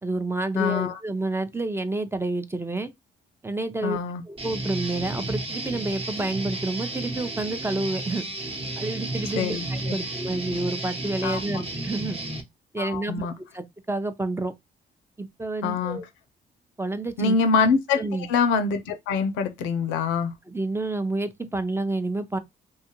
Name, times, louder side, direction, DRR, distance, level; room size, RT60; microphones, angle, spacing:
voice 1, 0.0-2.9 3.4-4.0 4.3-8.2 8.8-12.2 12.7-13.3 13.5-14.5 15.2-16.0 16.8-17.4 18.0-18.3 20.5-22.4, right 2 dB, 15° right, 0.5 m, -29 dB
voice 2, 0.5-1.0 3.8-4.2 9.4-10.0 11.2-11.4 12.8-13.3 15.6-16.0 17.2-18.0 18.3-20.3, left 5 dB, 85° left, 0.5 m, -24 dB
Guitar, 4.4-12.4, right 2 dB, 30° right, 0.9 m, -32 dB
2.7 x 2.3 x 2.9 m
supercardioid pair, 60°, 19 cm